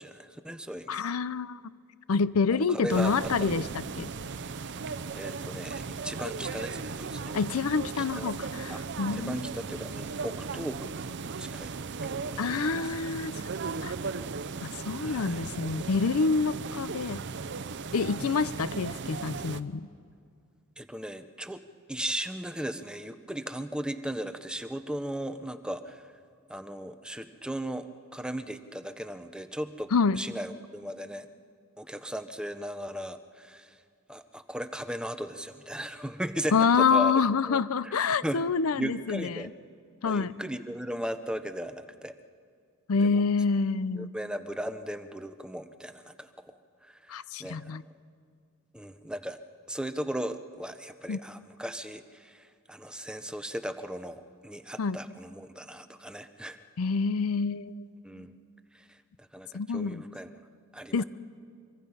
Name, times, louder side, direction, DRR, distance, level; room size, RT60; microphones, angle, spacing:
voice 1, 0.0-1.1 2.5-3.5 5.1-7.3 8.0-8.3 8.7-8.8 9.1-11.1 11.4-11.7 12.0-12.5 12.8-12.9 15.0-15.4 20.8-21.6 21.9-26.1 26.5-31.3 31.8-33.8 34.1-37.1 37.5-37.9 38.2-38.4 38.7-39.5 40.0-42.1 43.0-43.2 43.9-47.8 48.7-49.4 49.7-56.6 58.0-58.3 58.7-60.3 60.7-61.0, equal, 5° right, 10 dB, 0.7 m, -37 dB
voice 2, 0.9-1.6 2.1-3.7 4.0-4.1 7.3-9.4 12.4-13.3 13.8-14.0 14.6-17.2 17.9-19.9 29.9-30.2 36.5-39.4 40.0-40.4 42.9-44.1 47.1-47.8 51.1-51.2 54.8-55.0 56.8-57.7 59.5-60.0 60.9-61.0, left 5 dB, 75° left, 17 dB, 0.5 m, -27 dB
sound 1, 2.9-19.6, right 4 dB, 55° right, 0.6 m, -37 dB
24.5 x 24.0 x 5.5 m, 2.2 s
head